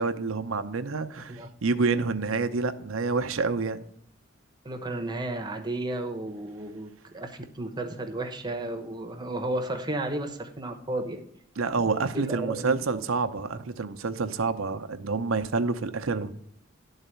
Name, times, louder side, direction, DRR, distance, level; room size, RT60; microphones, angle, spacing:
voice 1, 0.0-3.8 11.6-16.3, right 4 dB, 90° right, 0.7 m, -28 dB
voice 2, 4.6-11.2 11.9-13.0, right 2 dB, 20° right, 1.0 m, -33 dB
11.0 x 4.0 x 6.7 m
head